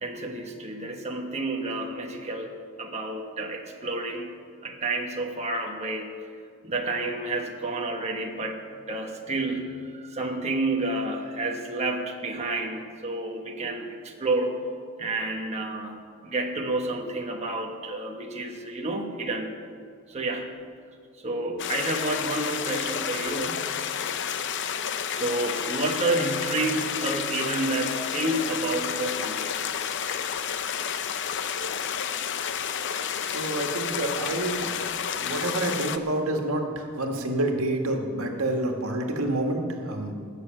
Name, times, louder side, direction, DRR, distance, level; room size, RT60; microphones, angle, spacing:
voice 1, 0.0-2.5 2.8-6.1 6.6-8.6 8.9-14.6 15.0-16.0 16.2-19.6 20.1-20.5 21.2-23.7 25.1-29.5, right 2 dB, 30° right, 1 dB, 1.1 m, -30 dB
sound 1, 21.6-36.0, left 8 dB, 60° left, 0.7 m, -30 dB
voice 2, 33.2-34.7 35.0-40.1, right 1 dB, 85° right, 3 dB, 1.8 m, -28 dB
19.0 x 6.6 x 7.6 m, 2.2 s
head